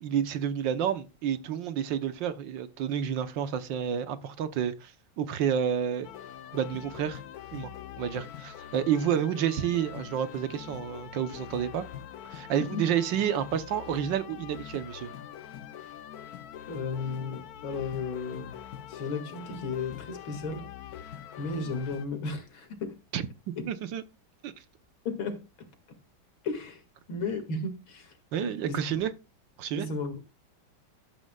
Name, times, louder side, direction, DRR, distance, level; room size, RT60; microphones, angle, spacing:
voice 1, 0.0-6.1 6.5-7.2 7.5-7.7 8.0-11.8 12.3-15.1 23.1-23.2 23.7-24.0 24.4-24.5 28.3-29.1 29.6-29.9, right 9 dB, 70° right, 1.6 m, -30 dB
sound 1, 6.0-22.0, left 10 dB, 65° left, 1.0 m, -43 dB
voice 2, 16.6-18.6 18.9-20.7 21.4-23.0 23.6-23.7 25.0-25.7 26.4-26.8 27.1-29.0 29.7-30.3, left 4 dB, 85° left, 2.8 m, -34 dB
12.0 x 9.8 x 2.3 m
omnidirectional pair, 2.1 m